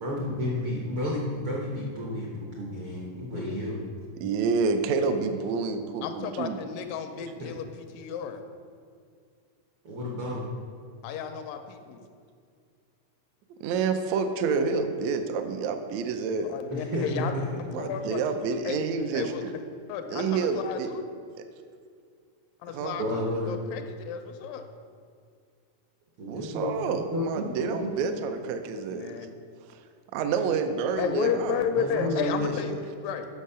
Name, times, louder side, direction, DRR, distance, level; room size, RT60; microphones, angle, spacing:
voice 1, 0.0-3.8 7.4-7.5 9.8-10.5 16.7-17.5 23.0-23.6 26.2-28.1 31.7-32.5, left 1 dB, 65° right, -3 dB, 1.3 m, -31 dB
voice 2, 4.2-6.6 13.6-16.6 17.7-19.5 20.1-20.9 22.7-23.0 26.3-29.3 30.1-32.8, right 5 dB, 80° right, 7 dB, 1.6 m, -29 dB
voice 3, 6.0-8.4 11.0-12.0 16.4-17.3 17.6-18.3 18.6-18.8 19.1-19.5 19.9-21.0 22.6-24.6 28.9-29.3 31.0-33.3, left 7 dB, 85° left, 7 dB, 2.3 m, -33 dB
8.3 x 6.6 x 5.5 m, 2.2 s
omnidirectional pair, 3.9 m